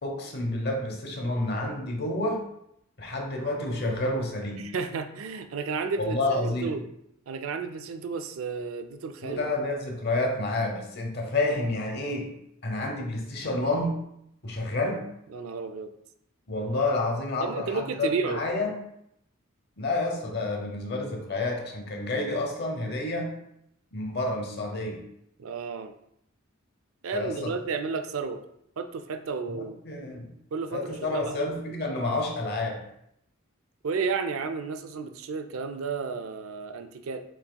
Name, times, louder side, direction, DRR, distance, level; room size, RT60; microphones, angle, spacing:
voice 1, 0.0-2.4 3.0-4.7 6.0-6.8 9.2-12.3 12.6-14.0 14.4-15.0 16.5-18.7 19.8-23.3 23.9-25.0 27.1-27.5 29.5-30.3 30.7-32.8, left 2 dB, 50° left, 2 dB, 0.9 m, -29 dB
voice 2, 4.6-6.8 7.3-9.4 15.3-15.9 17.4-18.4 25.4-25.9 27.0-28.4 28.8-29.8 30.5-31.4 33.8-37.2, right 4 dB, 80° right, 7 dB, 0.4 m, -32 dB
7.4 x 2.9 x 2.2 m, 0.75 s
head